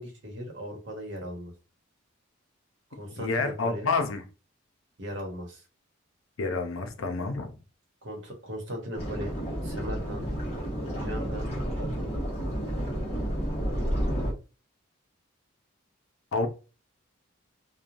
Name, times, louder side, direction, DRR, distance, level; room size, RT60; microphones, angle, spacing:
voice 1, 0.0-1.5 2.9-3.9 5.0-5.6 8.0-9.3 9.6-10.2 11.0-11.5 11.8-12.1, equal, 60° right, 1.0 m, -38 dB
voice 2, 3.2-4.2 6.4-7.6 16.3-16.5, left 3 dB, 75° left, 0.5 m, -28 dB
sound 1, 9.0-14.3, equal, 30° left, 0.9 m, -31 dB
3.1 x 2.2 x 2.5 m
head